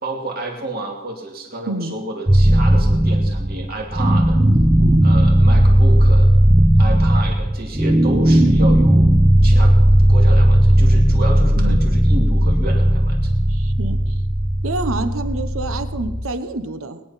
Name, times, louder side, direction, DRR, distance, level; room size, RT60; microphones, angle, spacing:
voice 1, 0.0-4.4 5.0-6.3 6.8-9.1 9.4-9.8 10.1-13.3, right 2 dB, 45° right, 0 dB, 2.5 m, -30 dB
sound 1, 2.3-16.3, equal, 15° right, 0.7 m, -15 dB
voice 2, 11.6-11.9 13.5-14.2 14.6-17.0, right 2 dB, 85° right, 10 dB, 1.1 m, -28 dB
21.0 x 10.5 x 5.7 m, 1.1 s
head